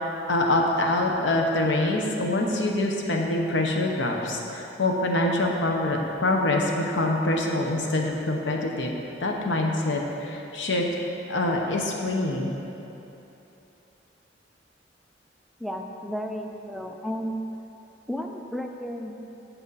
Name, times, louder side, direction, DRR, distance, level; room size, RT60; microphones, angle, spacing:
voice 1, 0.3-8.9 9.2-10.8 11.3-12.5, left 2 dB, 90° left, 1 dB, 0.9 m, -25 dB
voice 2, 15.6-17.4 18.1-19.1, equal, ahead, 3 dB, 0.4 m, -33 dB
7.9 x 7.2 x 4.1 m, 3.0 s
head